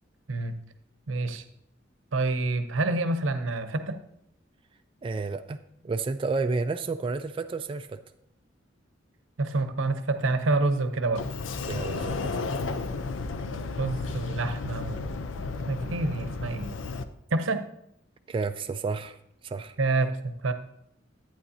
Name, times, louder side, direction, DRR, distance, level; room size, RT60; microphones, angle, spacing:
voice 1, 1.1-1.4 2.1-4.0 9.4-11.2 13.8-15.1 15.7-16.7 17.3-17.6 19.8-20.5, right 2 dB, 85° right, 9 dB, 0.7 m, -27 dB
voice 2, 5.0-8.0 11.7-12.4 18.3-19.2 19.4-19.8, right 4 dB, 25° right, 7 dB, 0.3 m, -31 dB
Sliding door, 11.2-17.0, left 3 dB, 80° left, 0.5 m, -33 dB
11.5 x 9.0 x 2.7 m, 0.77 s
head